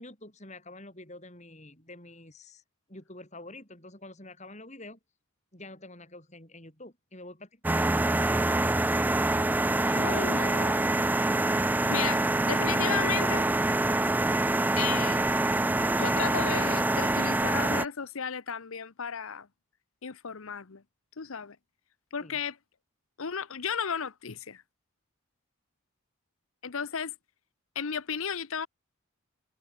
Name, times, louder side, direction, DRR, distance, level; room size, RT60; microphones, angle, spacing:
voice 1, 0.0-2.6 2.9-5.0 5.5-7.8 10.1-11.0 22.2-22.4, left 2 dB, 30° left, 5.7 m, -47 dB
sound 1, 7.6-17.8, right 2 dB, 10° right, 0.3 m, -25 dB
voice 2, 9.8-10.7 11.9-13.5 14.8-15.3 15.9-19.5 20.0-20.8 21.2-21.6 22.1-22.6 23.2-24.6 26.6-27.1 27.7-28.7, left 7 dB, 70° left, 0.9 m, -34 dB
head